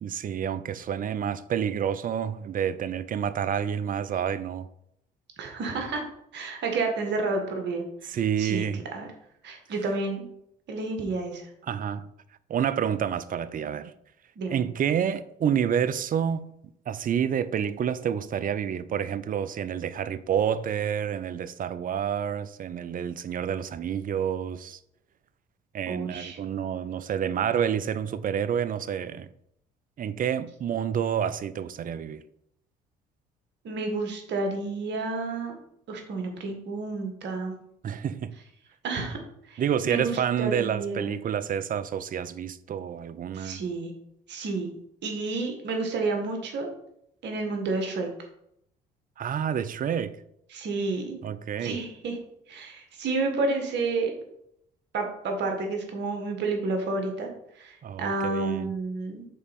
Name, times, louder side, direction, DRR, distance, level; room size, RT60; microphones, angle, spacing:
voice 1, 0.0-4.7 8.1-8.8 11.7-12.1 12.5-13.9 14.5-16.5 16.9-24.8 25.7-29.3 30.0-32.2 37.8-38.3 39.6-43.6 49.2-50.2 51.2-51.8 57.8-58.7, right 8 dB, 45° right, 0.5 m, -28 dB
voice 2, 5.4-6.0 6.3-9.1 9.4-10.3 10.7-11.5 14.4-14.6 25.9-26.4 33.6-35.6 35.9-37.6 38.8-39.2 39.4-41.1 43.3-43.9 44.3-44.7 45.0-46.7 47.2-48.1 50.5-51.2 51.6-52.2 52.5-54.1 54.9-57.3 57.6-59.3, right 3 dB, 65° right, 1.7 m, -30 dB
5.5 x 4.1 x 5.3 m
hypercardioid pair, 60°, 20 cm